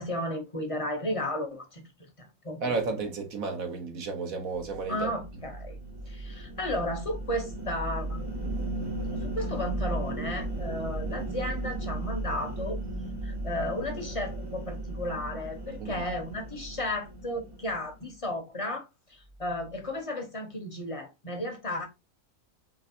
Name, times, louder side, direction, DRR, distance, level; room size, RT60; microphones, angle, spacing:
voice 1, 0.0-1.8 2.2-2.6 4.9-5.8 6.1-8.2 9.1-12.8 13.2-21.9, left 1 dB, 30° left, 0.7 m, -34 dB
voice 2, 2.6-5.2 15.8-16.0, right 4 dB, 70° right, 1.4 m, -32 dB
sound 1, 4.6-18.1, right 2 dB, 25° right, 0.6 m, -36 dB
5.1 x 3.3 x 2.7 m
omnidirectional pair, 1.5 m